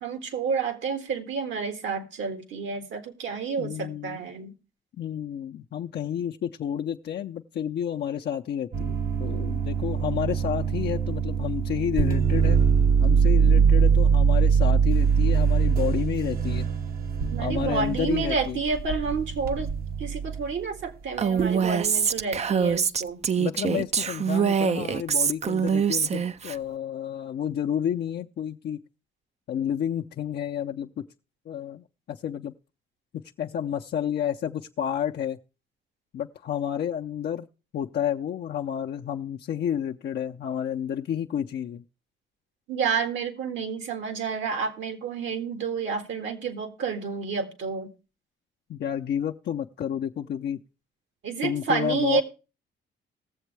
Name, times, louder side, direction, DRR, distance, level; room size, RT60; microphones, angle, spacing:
voice 1, 0.0-4.5 13.2-13.7 17.3-19.7 20.0-23.2 42.7-47.9 51.2-52.2, right 5 dB, 75° right, 1.9 m, -30 dB
voice 2, 3.6-4.2 5.0-12.6 13.0-16.7 17.4-18.6 23.4-28.8 29.5-31.0 31.5-32.5 33.4-35.4 36.1-37.5 37.7-41.8 48.7-50.6 51.4-52.2, left 9 dB, 55° left, 0.6 m, -30 dB
sound 1, 8.7-20.5 21.4-21.7, right 6 dB, 50° right, 0.9 m, -23 dB
Female speech woman speaking, 21.2-26.6, right 7 dB, 35° right, 0.5 m, -24 dB
18.5 x 7.3 x 3.3 m
cardioid pair, 90°, 20 cm